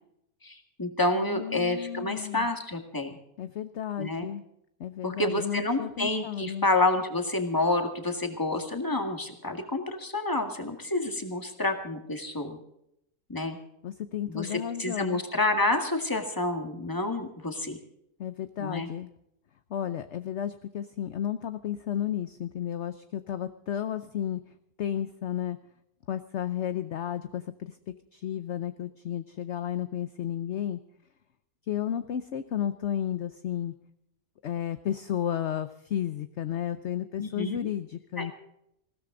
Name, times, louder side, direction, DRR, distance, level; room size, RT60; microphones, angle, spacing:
voice 1, 0.4-3.2 4.0-4.3 5.0-12.6 13.3-13.6 14.3-17.8 18.6-18.9 37.2-37.6 38.2-38.3, left 2 dB, 15° left, 5 dB, 1.9 m, -29 dB
voice 2, 1.1-2.5 3.4-4.4 4.8-6.7 13.8-15.2 18.2-19.1 19.7-24.4 24.8-25.6 26.1-27.8 28.1-30.8 31.7-33.7 34.4-38.3, left 10 dB, 55° left, 11 dB, 0.9 m, -33 dB
20.0 x 16.0 x 3.8 m, 0.78 s
omnidirectional pair, 1.6 m